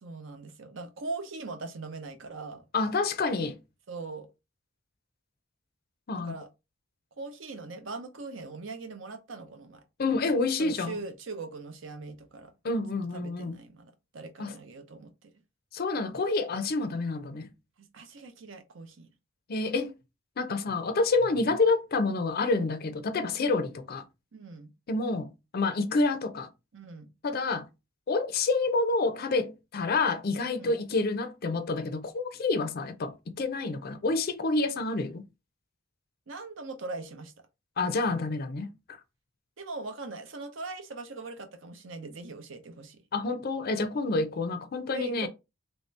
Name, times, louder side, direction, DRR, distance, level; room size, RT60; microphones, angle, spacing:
voice 1, 0.0-2.7 3.9-4.3 6.1-6.5 7.2-9.8 10.6-12.5 13.1-15.3 17.8-19.1 24.3-24.7 26.7-27.1 30.6-30.7 36.3-37.3 39.6-43.0 44.9-45.3, right 3 dB, 65° right, 0.6 m, -41 dB
voice 2, 2.7-3.6 6.1-6.4 10.0-11.0 12.6-13.6 14.4-14.5 15.7-17.5 19.5-19.9 20.4-24.0 24.9-26.5 27.2-27.7 28.1-35.3 37.8-38.7 43.1-45.3, left 3 dB, 50° left, 0.5 m, -28 dB
3.1 x 2.8 x 3.2 m
head